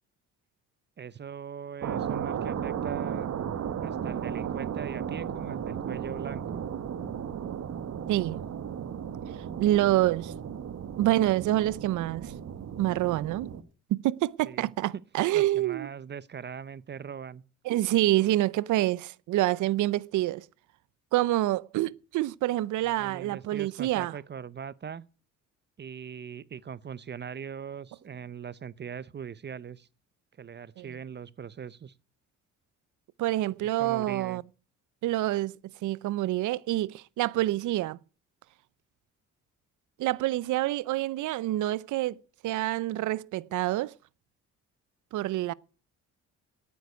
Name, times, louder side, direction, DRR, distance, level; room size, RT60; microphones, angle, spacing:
voice 1, 1.0-3.3 3.8-6.6 14.4-15.0 15.3-17.4 22.8-25.1 25.8-29.9 30.4-31.9 33.8-34.4, right 7 dB, 35° right, 0.6 m, -40 dB
sound 1, 1.8-13.6, right 8 dB, 60° right, 1.4 m, -35 dB
voice 2, 8.1-8.4 9.6-10.3 11.0-12.3 12.8-13.5 13.9-15.9 17.7-20.4 21.1-24.1 30.8-30.9 33.2-34.4 35.0-35.6 35.8-38.0 40.0-43.9 45.1-45.5, right 15 dB, 80° right, 0.6 m, -27 dB
9.3 x 9.3 x 9.6 m
cardioid pair, 90°, 30 cm